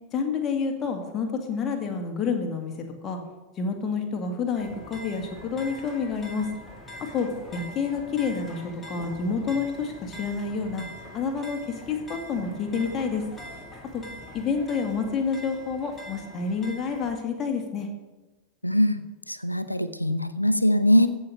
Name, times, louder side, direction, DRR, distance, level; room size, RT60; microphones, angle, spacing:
voice 1, 0.1-2.7 3.0-3.2 3.6-6.5 7.1-10.8 11.1-13.2 13.9-14.0 14.3-17.9, left 5 dB, 25° left, 4 dB, 2.0 m, -28 dB
sound 1, 4.6-17.2, equal, 10° left, 2.4 m, -43 dB
voice 2, 18.6-21.1, left 1 dB, 85° left, 12 dB, 0.7 m, -22 dB
15.5 x 5.8 x 6.5 m, 1.2 s
figure-of-eight pair, 90°, 0 cm